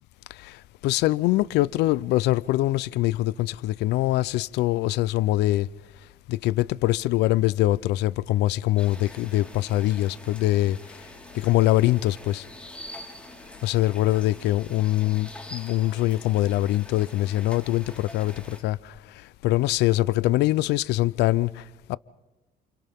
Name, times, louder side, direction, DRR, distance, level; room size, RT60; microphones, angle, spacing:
voice 1, 0.8-5.7 6.3-10.8 11.3-12.4 13.6-18.8 19.4-21.5 21.9-22.0, left 16 dB, 85° left, 0.6 m, -23 dB
sound 1, 8.8-18.6, left 1 dB, 5° left, 4.4 m, -45 dB
30.0 x 29.0 x 3.7 m
cardioid pair, 110°, 17 cm